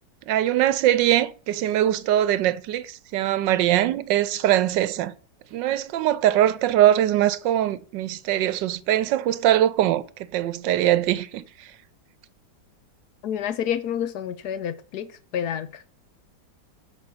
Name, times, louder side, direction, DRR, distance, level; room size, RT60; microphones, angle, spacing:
voice 1, 0.3-5.2 5.5-10.0 10.3-11.7, right 12 dB, 90° right, 1.4 m, -22 dB
voice 2, 13.2-15.8, left 9 dB, 70° left, 1.2 m, -29 dB
8.4 x 4.1 x 6.7 m
omnidirectional pair, 1.9 m